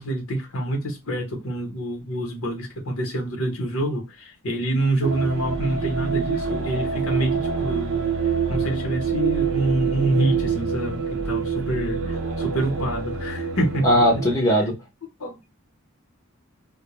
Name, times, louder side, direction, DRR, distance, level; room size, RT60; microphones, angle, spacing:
voice 1, 0.0-13.9 15.2-15.5, right 1 dB, 80° left, 0.9 m, -26 dB
sound 1, 5.0-14.3, right 6 dB, 70° right, 0.4 m, -26 dB
voice 2, 13.8-14.8, equal, 15° left, 0.7 m, -18 dB
2.1 x 2.1 x 2.9 m
head